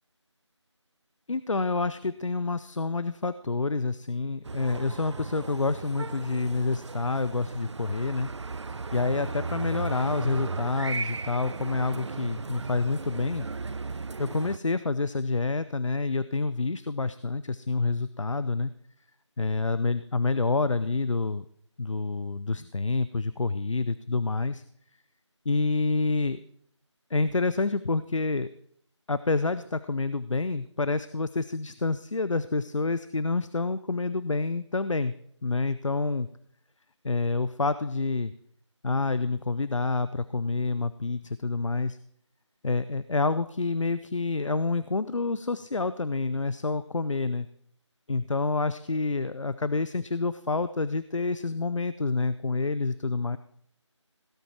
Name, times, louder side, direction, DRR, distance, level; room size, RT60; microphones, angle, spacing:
voice 1, 1.3-8.3 8.9-13.5 14.2-18.7 19.4-21.4 21.8-24.6 25.5-26.4 27.1-28.5 29.1-35.1 35.4-36.3 37.0-38.3 38.8-42.0 42.6-47.5 48.1-53.4, left 3 dB, 80° left, 14 dB, 0.6 m, -28 dB
sound 1, 4.4-14.6, right 4 dB, 65° right, 0.4 m, -36 dB
17.0 x 7.9 x 4.5 m, 0.65 s
figure-of-eight pair, 170°, 16 cm